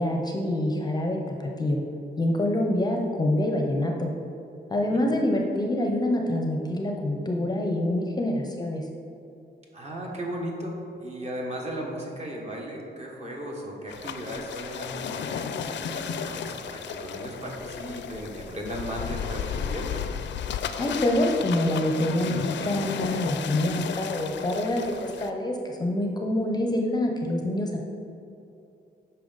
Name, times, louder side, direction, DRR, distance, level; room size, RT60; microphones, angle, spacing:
voice 1, 0.0-1.8 2.2-4.1 4.7-8.9 20.8-27.8, left 1 dB, 20° left, 1 dB, 0.6 m, -26 dB
voice 2, 9.7-20.0, right 1 dB, 35° right, -1 dB, 1.3 m, -36 dB
sound 1, 13.9-25.3, left 7 dB, 80° left, 0.4 m, -34 dB
8.6 x 5.7 x 3.9 m, 2.8 s
wide cardioid pair, 155°, 18 cm